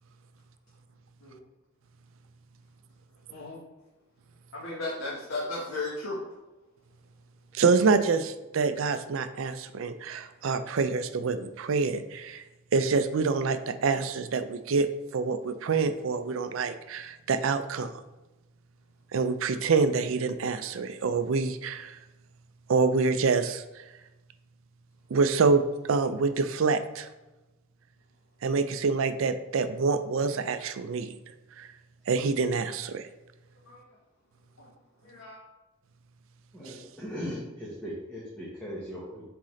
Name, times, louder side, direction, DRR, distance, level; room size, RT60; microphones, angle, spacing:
voice 1, 4.5-6.2 33.6-33.9 34.6-34.7 35.0-35.4, left 2 dB, 75° left, -5 dB, 1.2 m, -35 dB
voice 2, 7.5-12.4 12.7-17.9 19.1-22.0 22.7-23.8 25.1-25.6 25.9-27.1 28.4-31.1 31.6-31.7 32.1-33.1, right 4 dB, 65° right, 10 dB, 0.4 m, -26 dB
voice 3, 36.5-39.2, equal, 5° left, -7 dB, 1.2 m, -38 dB
7.9 x 3.7 x 3.2 m, 1.1 s
head